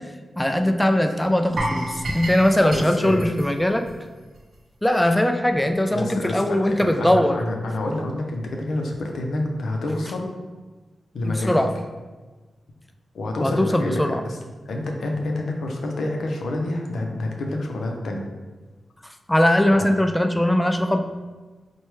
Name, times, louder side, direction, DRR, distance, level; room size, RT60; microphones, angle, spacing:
voice 1, 0.4-3.8 4.8-7.4 11.2-11.7 13.4-14.2 19.3-21.0, left 1 dB, 10° left, 6 dB, 0.3 m, -20 dB
sound 1, 1.6-4.6 4.8-5.0 5.5-5.6, right 1 dB, 60° right, 0.7 m, -31 dB
voice 2, 2.5-3.3 5.9-10.4 11.1-11.6 13.1-14.4 14.7-18.3 19.7-19.9, left 2 dB, 80° left, 2 dB, 0.5 m, -28 dB
4.4 x 2.2 x 3.1 m, 1.3 s
cardioid pair, 70°, 0 cm